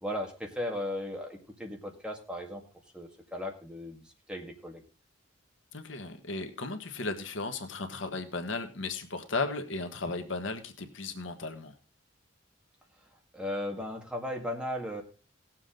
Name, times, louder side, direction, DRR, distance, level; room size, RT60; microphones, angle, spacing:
voice 1, 0.0-2.6 2.9-4.8 13.3-15.0, left 1 dB, 5° right, 1 dB, 1.9 m, -36 dB
voice 2, 5.7-11.7, left 3 dB, 70° left, 7 dB, 1.3 m, -35 dB
18.0 x 7.4 x 3.8 m, 0.34 s
head